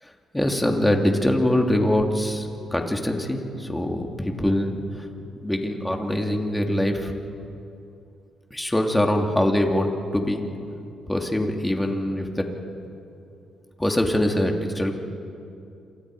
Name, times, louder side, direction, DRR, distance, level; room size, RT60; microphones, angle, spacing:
voice 1, 0.0-5.1 5.4-7.1 8.5-10.4 11.1-12.5 13.8-14.9, left 1 dB, 10° left, 2 dB, 2.7 m, -23 dB
27.5 x 26.0 x 5.0 m, 2.7 s
cardioid pair, 90°, 0 cm